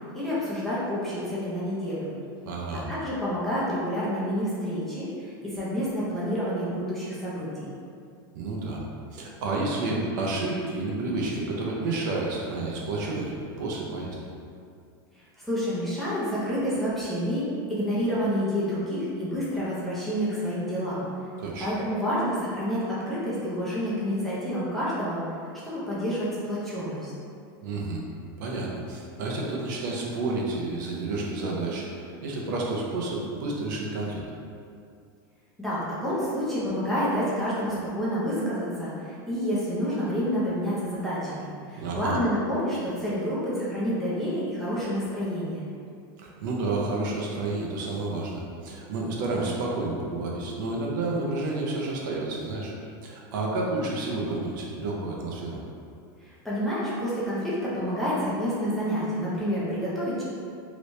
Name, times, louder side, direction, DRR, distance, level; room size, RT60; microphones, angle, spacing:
voice 1, 0.1-2.1 2.9-7.7 15.1-17.4 17.7-21.1 21.6-25.2 25.6-27.1 35.6-45.7 56.2-60.2, equal, ahead, -11 dB, 0.5 m, -29 dB
voice 2, 2.5-2.9 8.3-8.8 9.1-13.3 13.6-14.2 21.4-21.7 27.6-28.0 28.4-34.2 41.7-42.2 46.2-52.7 53.0-55.6, right 2 dB, 55° right, -3 dB, 0.6 m, -30 dB
3.2 x 3.0 x 2.7 m, 2.4 s
supercardioid pair, 175°, 12 cm